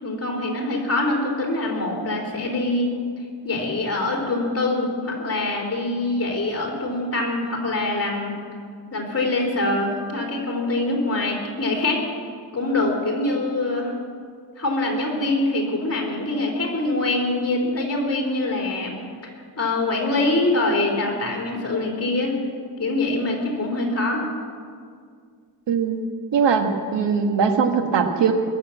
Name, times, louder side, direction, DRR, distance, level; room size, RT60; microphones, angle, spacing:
voice 1, 0.0-2.9 3.4-8.3 8.9-12.0 12.5-14.0 14.6-18.9 19.2-22.4 22.8-24.2, left 2 dB, 35° left, -1 dB, 3.8 m, -24 dB
voice 2, 25.7-26.0 26.3-28.3, right 6 dB, 80° right, 5 dB, 1.6 m, -20 dB
21.5 x 7.2 x 7.5 m, 2.1 s
cardioid pair, 110°, 42 cm